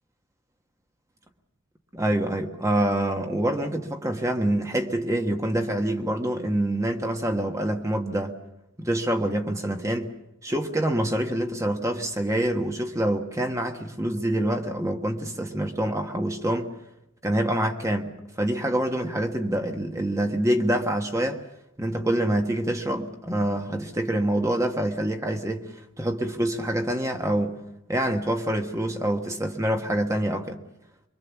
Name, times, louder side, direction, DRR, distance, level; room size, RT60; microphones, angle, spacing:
voice 1, 1.9-8.4 8.8-10.1 10.4-16.7 17.2-21.4 21.8-25.7 26.0-27.6 27.9-30.6, right 1 dB, 15° right, 1.3 m, -26 dB
24.0 x 23.5 x 7.2 m
head